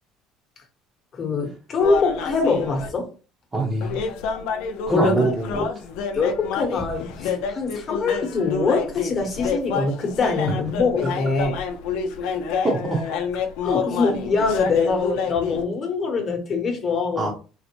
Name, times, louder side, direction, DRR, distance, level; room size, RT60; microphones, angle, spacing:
voice 1, 1.1-3.1 4.9-5.3 6.1-11.6 12.2-12.3 13.6-17.3, left 4 dB, 30° left, 1.0 m, -23 dB
sound 1, 1.8-2.9 3.8-15.6, left 6 dB, 85° left, 0.5 m, -28 dB
voice 2, 3.5-4.0 4.9-5.7 12.6-13.0 17.2-17.3, right 2 dB, 15° right, 0.7 m, -24 dB
3.9 x 2.0 x 2.9 m
cardioid pair, 145°, 0 cm